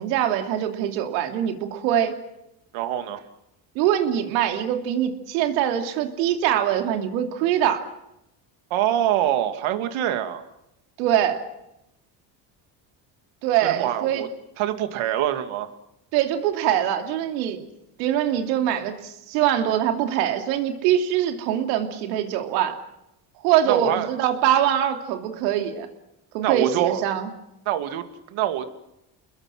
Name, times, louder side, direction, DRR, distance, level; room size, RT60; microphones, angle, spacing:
voice 1, 0.0-2.2 3.7-7.8 11.0-11.4 13.4-14.2 16.1-17.6 18.0-22.8 23.4-25.9 26.3-27.3, right 10 dB, 85° right, 5 dB, 2.9 m, -23 dB
voice 2, 2.7-3.2 8.7-10.4 13.6-14.3 14.6-15.7 23.7-24.1 26.4-27.1 27.7-28.7, right 11 dB, 70° right, 8 dB, 2.7 m, -25 dB
30.0 x 21.0 x 6.3 m, 0.84 s
supercardioid pair, 80°, 50 cm